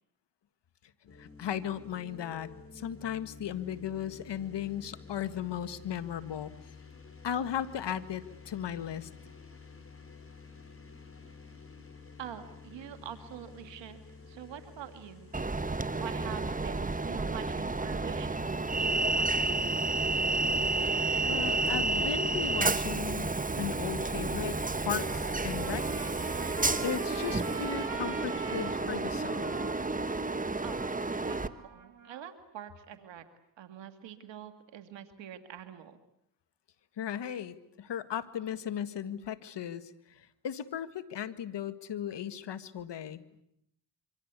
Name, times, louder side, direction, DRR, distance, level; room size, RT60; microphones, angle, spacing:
voice 1, 1.1-6.5 7.2-9.1 21.3-26.1 26.8-29.6 37.0-43.2, left 9 dB, 75° left, 12 dB, 1.8 m, -36 dB
sound 1, 1.1-19.3, left 5 dB, 30° left, 6.8 m, -52 dB
voice 2, 12.2-15.4 16.0-18.5 18.8-19.5 30.6-30.9 31.1-33.2 33.6-36.0, right 10 dB, 85° right, 8 dB, 2.1 m, -45 dB
Train, 15.3-31.5, right 3 dB, 20° right, 1.3 m, -31 dB
Trumpet, 24.9-32.2, right 5 dB, 45° right, 3.0 m, -45 dB
26.5 x 25.0 x 8.2 m, 0.75 s
cardioid pair, 60°, 43 cm